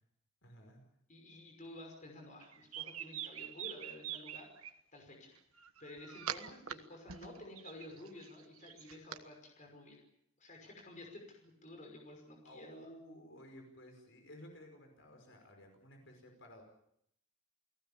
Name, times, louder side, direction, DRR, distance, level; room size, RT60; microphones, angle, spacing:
voice 1, 0.4-0.8 12.4-16.6, equal, 55° left, 4 dB, 5.4 m, -55 dB
voice 2, 1.1-5.3 5.8-10.0 10.4-12.9, left 1 dB, 35° left, 2 dB, 5.6 m, -52 dB
sound 1, 2.4-4.7 5.6-6.7 7.1-9.2, right 9 dB, 80° right, 1.4 m, -44 dB
29.5 x 18.5 x 7.2 m, 0.73 s
head